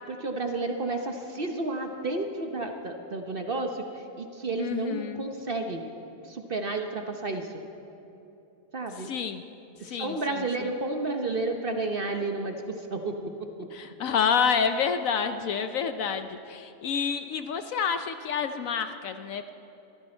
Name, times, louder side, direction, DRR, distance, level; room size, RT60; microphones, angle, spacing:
voice 1, 0.0-5.9 6.2-7.6 8.7-9.1 9.8-13.2, right 2 dB, 40° right, 4 dB, 0.9 m, -31 dB
voice 2, 4.6-5.2 9.0-9.4 9.8-10.7 13.7-19.5, left 6 dB, 65° left, 9 dB, 0.9 m, -29 dB
23.0 x 14.5 x 4.4 m, 3.0 s
omnidirectional pair, 1.7 m